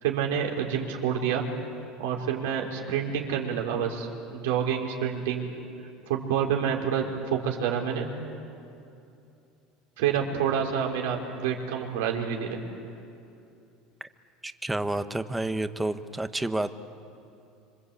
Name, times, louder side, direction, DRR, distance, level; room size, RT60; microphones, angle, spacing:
voice 1, 0.0-1.4 2.0-5.5 6.1-8.1 10.0-12.6, right 8 dB, 85° right, 0 dB, 4.1 m, -28 dB
voice 2, 14.4-16.7, right 2 dB, 10° right, 9 dB, 1.3 m, -29 dB
26.0 x 25.5 x 8.4 m, 2.7 s
supercardioid pair, 105°, 0 cm